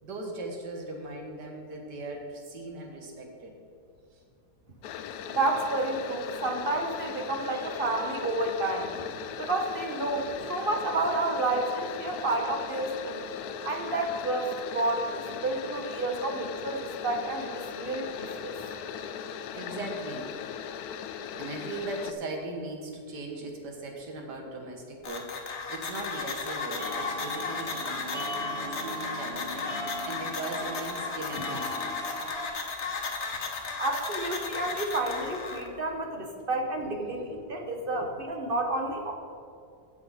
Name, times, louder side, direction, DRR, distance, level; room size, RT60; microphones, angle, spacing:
voice 1, 0.0-3.5 4.1-4.2 8.8-8.9 10.0-10.4 19.1-19.3 19.5-20.4 21.4-32.1 35.7-35.8 36.4-36.5 36.8-37.6, right 2 dB, 80° right, 2 dB, 2.0 m, -39 dB
sound 1, 4.8-22.1, left 8 dB, 70° left, 1.0 m, -39 dB
voice 2, 5.3-8.9 9.4-13.2 13.6-18.5 33.8-39.1, right 2 dB, 40° right, 3 dB, 1.0 m, -30 dB
sound 2, 25.0-35.7, left 4 dB, 50° left, 1.1 m, -35 dB
sound 3, 26.8-32.5, equal, 20° right, 1.6 m, -38 dB
16.0 x 5.9 x 4.1 m, 2.4 s
omnidirectional pair, 1.8 m